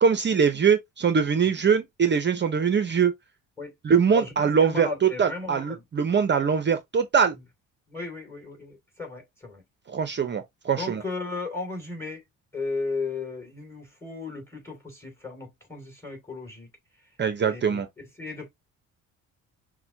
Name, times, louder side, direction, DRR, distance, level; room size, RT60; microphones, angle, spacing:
voice 1, 0.0-3.1 3.8-7.3 9.9-11.0 17.2-17.9, right 6 dB, 35° right, 0.6 m, -22 dB
voice 2, 4.1-5.8 7.9-9.6 10.7-12.2 12.5-16.7 17.5-18.5, left 3 dB, 5° left, 2.8 m, -35 dB
5.8 x 2.2 x 2.7 m
cardioid pair, 100°, 33 cm